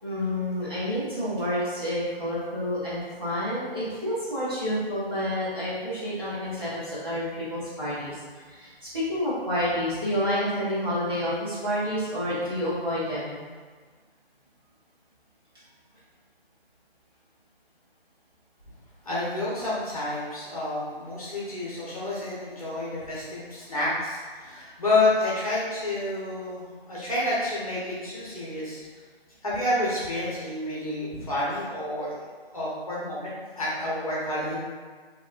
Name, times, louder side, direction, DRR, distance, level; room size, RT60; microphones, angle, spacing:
voice 1, 0.0-8.2 8.5-13.3, equal, 25° right, -12 dB, 1.0 m, -29 dB
voice 2, 19.0-28.8 29.4-34.6, left 2 dB, 35° left, -8 dB, 1.0 m, -29 dB
4.0 x 2.9 x 2.4 m, 1.5 s
figure-of-eight pair, 170°, 31 cm